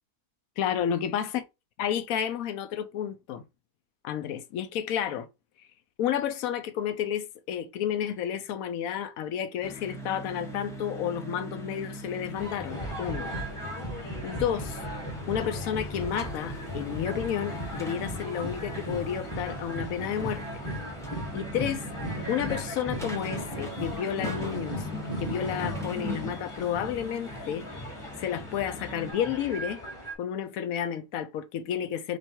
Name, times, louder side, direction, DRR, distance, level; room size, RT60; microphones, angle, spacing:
voice 1, 0.6-1.3 1.8-3.4 4.0-5.3 6.0-13.3 14.2-14.8 15.3-20.4 21.3-21.9 22.3-24.8 25.2-27.7 28.2-29.8 30.2-32.2, left 9 dB, 70° left, 0.9 m, -31 dB
sound 1, 9.6-29.1, equal, 5° left, 0.6 m, -41 dB
sound 2, 12.4-30.1, equal, 20° left, 1.1 m, -37 dB
3.3 x 3.1 x 4.4 m
omnidirectional pair, 1.7 m